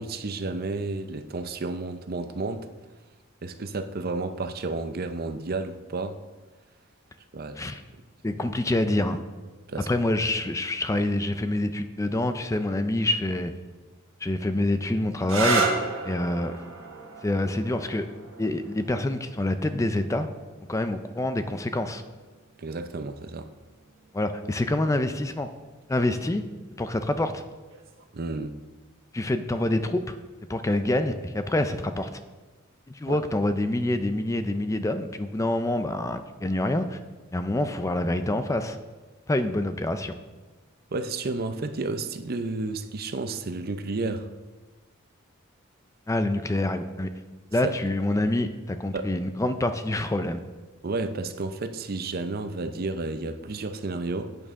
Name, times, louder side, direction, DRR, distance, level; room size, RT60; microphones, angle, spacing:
voice 1, 0.0-2.7 3.4-6.2 7.3-7.7 9.7-9.9 22.6-23.5 28.1-28.6 33.1-33.2 40.9-44.3 47.6-47.8 48.9-49.1 50.8-54.4, right 3 dB, 45° right, 10 dB, 0.6 m, -31 dB
voice 2, 8.2-9.2 9.9-13.5 14.2-16.5 17.2-18.1 18.4-20.3 20.7-22.0 24.1-25.5 25.9-26.4 26.8-27.4 29.1-30.2 30.5-32.1 32.9-37.0 37.3-38.8 39.3-40.1 46.1-47.1 47.5-50.4, left 1 dB, 15° left, 9 dB, 0.4 m, -26 dB
sound 1, 15.2-22.7 23.7-24.2 27.7-28.0, right 3 dB, 75° right, 1.4 m, -33 dB
11.0 x 8.7 x 3.6 m, 1.2 s
head